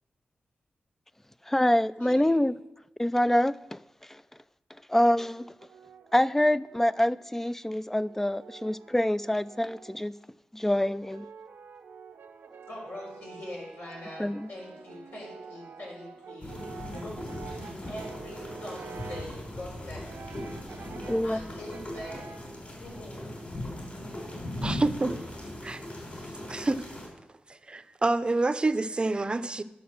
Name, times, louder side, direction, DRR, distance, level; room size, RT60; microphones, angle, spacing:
voice 1, 1.5-2.6 3.0-3.8 4.1-4.2 4.9-5.5 6.1-10.1 10.5-11.3 14.2-14.5 21.1-21.4, left 1 dB, 10° left, 0.3 m, -26 dB
voice 2, 2.0-2.4 12.7-20.6 21.2-22.4 22.7-23.3, left 1 dB, 80° left, 4.4 m, -43 dB
Brass instrument, 5.4-7.3 8.0-10.1 10.8-19.4 20.0-21.4 21.7-22.5, right 6 dB, 85° right, 0.7 m, -47 dB
sound 1, 16.4-27.1, left 1 dB, 45° left, 4.0 m, -39 dB
voice 3, 24.6-25.8 26.5-26.8 27.7-29.6, right 2 dB, 30° right, 0.6 m, -28 dB
10.0 x 6.8 x 6.3 m
wide cardioid pair, 85°, 3 cm